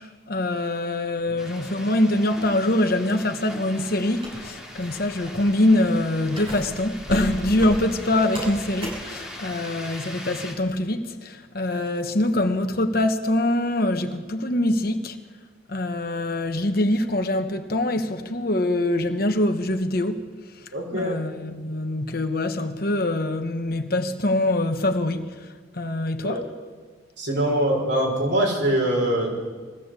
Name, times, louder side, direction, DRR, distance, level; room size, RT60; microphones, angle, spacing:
voice 1, 0.3-15.1 15.7-20.2 20.9-25.3 25.8-26.4, left 1 dB, 50° left, 1.4 m, -24 dB
sound 1, 1.4-10.5, left 1 dB, 5° right, 3.2 m, -41 dB
sound 2, 4.1-9.2, equal, 25° right, 7.1 m, -35 dB
voice 2, 20.7-21.2 26.2-26.5 27.2-29.3, right 1 dB, 70° right, 5.8 m, -23 dB
21.0 x 15.0 x 8.3 m
head